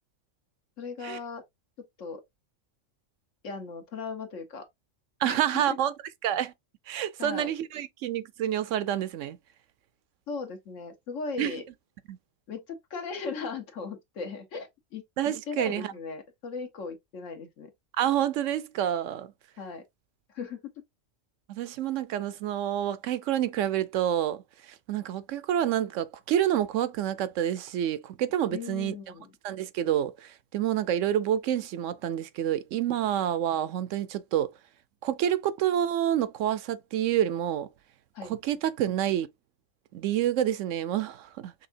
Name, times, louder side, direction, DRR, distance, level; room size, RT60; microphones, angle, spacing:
voice 1, 0.8-1.4 2.0-2.2 3.4-4.7 5.2-5.8 7.2-7.5 10.3-11.6 12.5-15.0 15.5-17.7 19.6-19.8 20.3-20.7 28.5-29.3 38.1-38.3, left 5 dB, 70° left, 1.5 m, -37 dB
voice 2, 5.2-5.9 6.2-6.5 6.9-9.4 11.4-11.6 12.1-12.2 15.2-15.9 18.0-19.3 21.5-28.9 29.4-34.5 35.0-37.7 38.2-39.3 39.9-41.7, right 11 dB, 75° right, 0.9 m, -28 dB
5.6 x 3.4 x 2.6 m
omnidirectional pair, 1.3 m